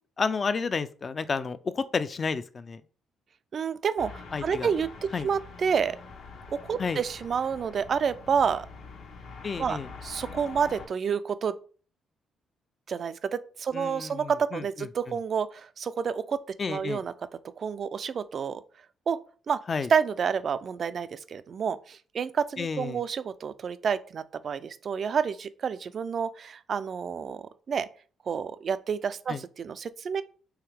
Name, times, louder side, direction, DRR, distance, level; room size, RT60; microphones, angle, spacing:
voice 1, 0.2-2.8 4.3-4.7 5.1-5.3 6.8-7.0 9.4-9.9 13.7-14.9 16.6-17.0 19.7-19.9 22.6-23.0 29.3-29.4, left 5 dB, 40° left, 13 dB, 0.4 m, -31 dB
voice 2, 3.5-4.9 5.2-6.0 6.5-8.7 9.6-11.6 12.9-16.4 16.7-17.1 17.6-18.6 19.1-19.2 19.5-19.6 19.9-27.9 28.3-30.2, right 6 dB, 50° right, 14 dB, 0.3 m, -29 dB
sound 1, 4.0-10.9, left 4 dB, 80° left, 1.0 m, -45 dB
4.7 x 3.1 x 3.3 m, 0.41 s
cardioid pair, 90°, 0 cm